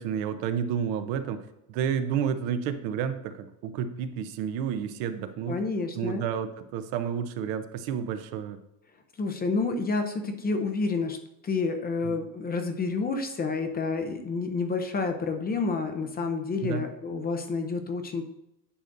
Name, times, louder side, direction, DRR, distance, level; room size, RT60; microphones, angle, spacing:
voice 1, 0.0-1.4 1.7-5.6 5.9-8.6 12.0-12.2 16.6-16.9, right 8 dB, 65° right, 9 dB, 0.8 m, -30 dB
voice 2, 5.5-6.2 9.2-11.2 11.4-18.2, left 4 dB, 20° left, 6 dB, 0.5 m, -29 dB
9.8 x 6.5 x 2.6 m, 0.84 s
supercardioid pair, 130°, 48 cm